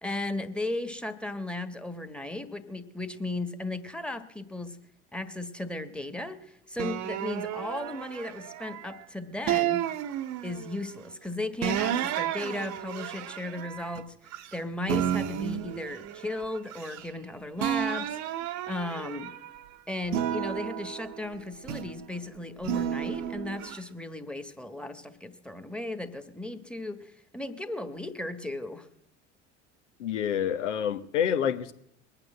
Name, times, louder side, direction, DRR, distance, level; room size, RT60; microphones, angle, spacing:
voice 1, 0.0-4.8 5.1-9.8 10.4-18.2 18.7-19.3 19.9-28.9, left 2 dB, 5° left, 9 dB, 1.4 m, -36 dB
sound 1, 6.8-8.9 9.5-10.8 11.6-14.6 14.9-17.3 17.6-19.6 20.1-22.1 22.6-23.8, right 10 dB, 55° right, 1.0 m, -32 dB
voice 2, 30.0-31.7, left 9 dB, 85° left, 10 dB, 1.1 m, -27 dB
21.0 x 9.0 x 7.6 m, 0.75 s
hypercardioid pair, 75°, 35 cm